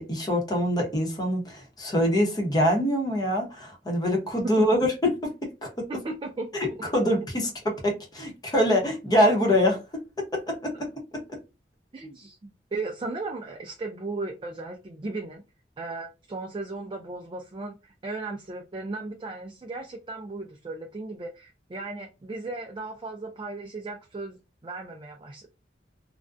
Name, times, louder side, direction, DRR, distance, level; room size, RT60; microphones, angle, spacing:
voice 1, 0.0-5.3 5.6-5.9 6.6-9.8 10.2-11.2, equal, 25° left, 0.8 m, -25 dB
voice 2, 5.9-6.5 11.9-15.4 15.8-24.4 24.6-25.5, right 3 dB, 25° right, 0.3 m, -36 dB
2.4 x 2.1 x 2.5 m
head